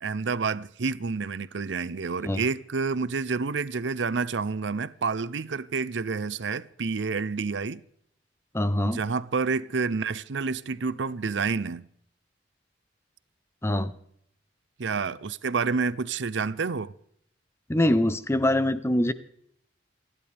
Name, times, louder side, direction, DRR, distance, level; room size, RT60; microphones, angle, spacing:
voice 1, 0.0-7.8 8.8-11.9 14.8-16.9, right 4 dB, 75° right, 0.6 m, -29 dB
voice 2, 8.5-9.0 13.6-13.9 17.7-19.1, left 1 dB, 15° left, 0.7 m, -24 dB
28.5 x 11.0 x 3.5 m
head